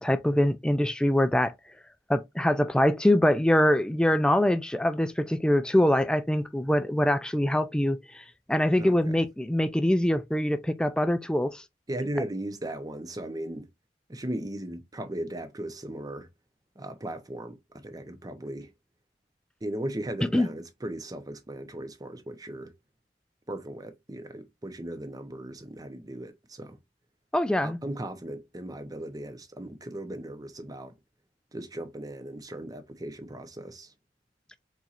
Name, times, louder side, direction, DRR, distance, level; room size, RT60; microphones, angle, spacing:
voice 1, 0.0-1.5 2.1-11.6 20.3-20.5 27.3-27.8, left 1 dB, 5° left, 0.4 m, -24 dB
voice 2, 8.8-9.2 11.9-13.7 14.1-16.3 16.8-18.7 19.6-22.7 23.5-26.8 27.6-31.0 31.5-33.9, right 1 dB, 20° right, 0.7 m, -37 dB
4.5 x 4.1 x 2.5 m
head